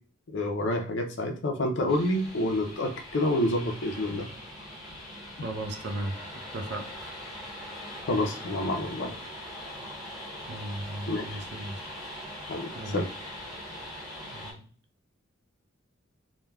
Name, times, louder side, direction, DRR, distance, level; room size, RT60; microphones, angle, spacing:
voice 1, 0.3-4.3 8.1-9.1 11.1-11.4 12.5-13.0, left 1 dB, 60° left, 4 dB, 0.5 m, -28 dB
sound 1, 1.9-14.5, left 1 dB, ahead, 1.1 m, -42 dB
voice 2, 5.4-6.2 6.5-6.9 10.5-11.9 12.7-13.1 14.2-14.7, right 1 dB, 55° right, 4 dB, 0.5 m, -36 dB
3.2 x 2.2 x 2.2 m, 0.42 s
head